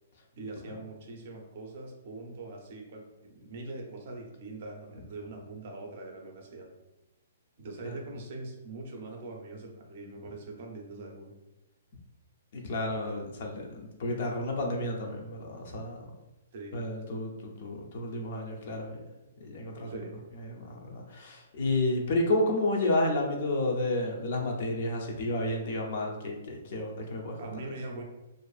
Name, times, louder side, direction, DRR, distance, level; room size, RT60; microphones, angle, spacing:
voice 1, 0.3-6.7 7.6-11.3 16.5-16.8 19.9-20.1 27.4-28.0, right 2 dB, 45° right, 1 dB, 0.5 m, -42 dB
voice 2, 12.5-16.1 16.7-19.0 19.4-27.4, left 2 dB, 45° left, 1 dB, 0.4 m, -31 dB
2.5 x 2.3 x 2.3 m, 1.0 s
hypercardioid pair, 170°, 0 cm